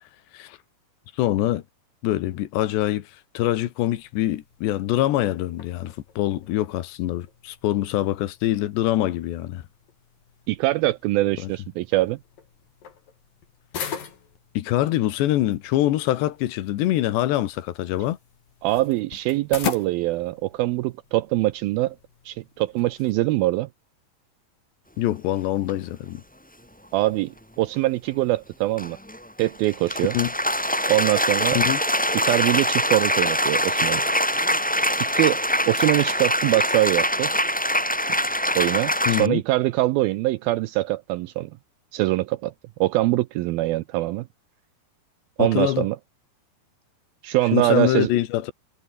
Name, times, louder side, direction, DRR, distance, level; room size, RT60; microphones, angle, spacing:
voice 1, 1.2-1.6 2.0-3.1 3.4-9.6 11.4-11.5 14.6-18.2 25.0-26.2 30.1-30.3 31.6-31.8 39.1-39.4 45.4-45.9 47.5-48.5, left 14 dB, 85° left, 3.6 m, -24 dB
sound 1, 3.9-23.6, left 7 dB, 55° left, 4.9 m, -41 dB
voice 2, 10.5-12.2 18.6-22.0 22.3-23.7 26.9-29.0 29.4-30.2 30.9-31.6 32.1-34.0 35.0-35.4 35.7-37.3 38.6-41.5 41.9-42.5 42.8-44.3 45.4-46.0 47.2-48.1, right 17 dB, 80° right, 2.2 m, -23 dB
sound 2, 25.7-25.8 28.8-39.3, equal, 5° left, 1.9 m, -23 dB
omnidirectional pair, 4.8 m